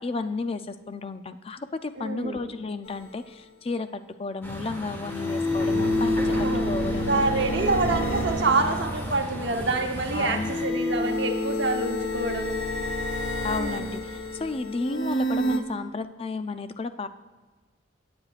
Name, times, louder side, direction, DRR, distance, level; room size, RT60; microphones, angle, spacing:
voice 1, 0.0-7.2 10.1-10.5 13.4-17.1, left 3 dB, 30° left, 10 dB, 0.4 m, -32 dB
voice 2, 2.0-2.4 6.3-6.7 7.1-12.6 13.5-14.0, right 3 dB, 60° right, 3 dB, 1.0 m, -27 dB
sound 1, 2.9-3.0 5.0-9.5 10.3-15.6, left 1 dB, 75° left, 1.0 m, -28 dB
Truck, 4.4-10.7, equal, 10° left, 1.4 m, -35 dB
18.5 x 7.9 x 2.4 m, 1.3 s
head